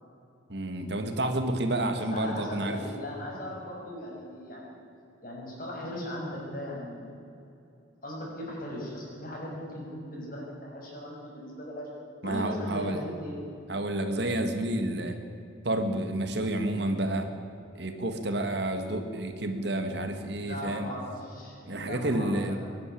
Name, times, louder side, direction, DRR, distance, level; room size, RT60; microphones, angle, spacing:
voice 1, 0.5-2.8 12.2-13.0 13.7-15.2 15.6-17.3 17.7-20.9 21.7-22.6, right 1 dB, 60° right, 6 dB, 1.9 m, -30 dB
voice 2, 2.1-4.7 5.2-7.1 8.0-11.9 12.2-13.4 20.4-22.6, left 1 dB, 45° left, -3 dB, 6.7 m, -38 dB
23.0 x 11.0 x 10.0 m, 2.7 s
head